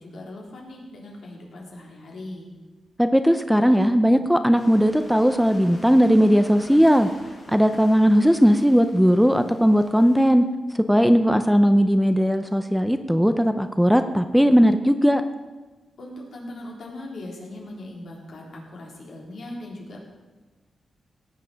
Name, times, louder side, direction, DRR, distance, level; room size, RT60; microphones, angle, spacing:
voice 1, 0.0-2.5 16.0-20.0, left 1 dB, 70° left, -2 dB, 3.8 m, -39 dB
voice 2, 3.0-7.1 7.5-10.4 10.7-15.2, equal, ahead, 9 dB, 0.6 m, -18 dB
sound 1, 4.5-10.3, left 2 dB, 50° left, 4.9 m, -47 dB
17.5 x 7.6 x 5.7 m, 1.3 s
cardioid pair, 100°, 0 cm